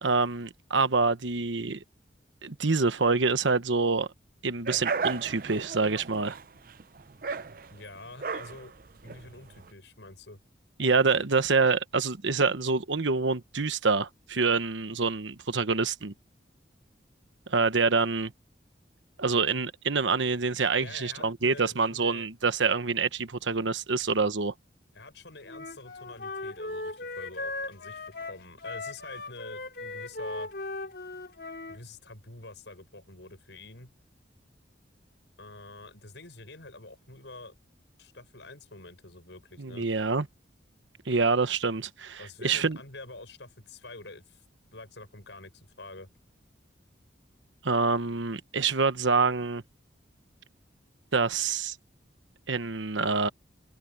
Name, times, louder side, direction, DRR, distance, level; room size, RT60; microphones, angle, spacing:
voice 1, 0.0-1.8 2.4-4.1 4.4-6.4 10.8-16.1 17.5-18.3 19.2-24.5 39.6-40.3 41.1-42.8 47.6-49.6 51.1-51.8 52.5-53.3, right 4 dB, 90° right, 1.1 m, -26 dB
sound 1, 4.7-9.7, right 5 dB, 50° right, 0.5 m, -35 dB
voice 2, 7.7-8.7 9.0-10.4 20.7-22.3 24.9-30.5 31.7-33.9 35.4-37.6 38.0-39.9 42.2-44.4 44.7-46.1, left 2 dB, 75° left, 5.8 m, -46 dB
Wind instrument woodwind instrument, 25.5-31.8, left 2 dB, 60° left, 4.2 m, -38 dB
head